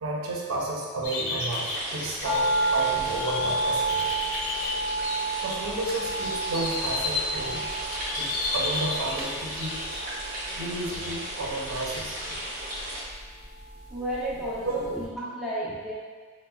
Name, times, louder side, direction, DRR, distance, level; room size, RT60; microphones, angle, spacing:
voice 1, 0.0-4.0 5.4-7.7 8.2-9.7 10.5-12.4 14.6-14.7, right 2 dB, 80° right, -3 dB, 0.6 m, -32 dB
sound 1, 1.0-10.1, left 2 dB, 80° left, 0.5 m, -33 dB
sound 2, 1.5-13.0, right 1 dB, 40° right, 0.7 m, -36 dB
sound 3, 2.2-14.5 14.8-14.9, right 2 dB, 35° left, 0.8 m, -32 dB
voice 2, 13.9-15.9, right 1 dB, ahead, -9 dB, 0.5 m, -32 dB
4.3 x 2.1 x 2.3 m, 1.5 s
head